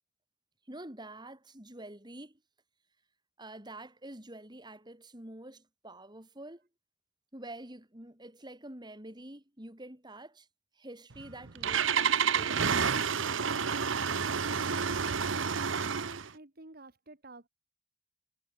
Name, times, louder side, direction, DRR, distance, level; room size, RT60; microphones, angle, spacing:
voice 1, 0.7-2.4 3.4-6.7 7.3-10.5 10.7-12.7, right 1 dB, 20° right, 3.2 m, -47 dB
Engine starting, 11.1-16.3, right 6 dB, 65° right, 1.0 m, -29 dB
voice 2, 15.8-17.5, right 2 dB, 45° right, 1.8 m, -50 dB
head